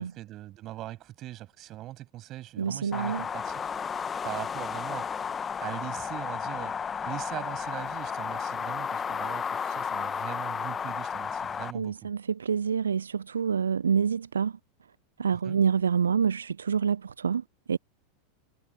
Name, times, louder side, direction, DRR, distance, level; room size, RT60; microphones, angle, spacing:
voice 1, 0.0-3.7 3.9-5.1 5.6-6.8 7.1-12.1 15.4-15.6, right 15 dB, 35° right, 7.8 m, -41 dB
voice 2, 2.6-3.2 11.7-14.6 15.2-17.8, right 7 dB, 70° right, 0.6 m, -27 dB
sound 1, 2.9-11.7, left 6 dB, 20° left, 1.3 m, -33 dB
figure-of-eight pair, 85°, 0 cm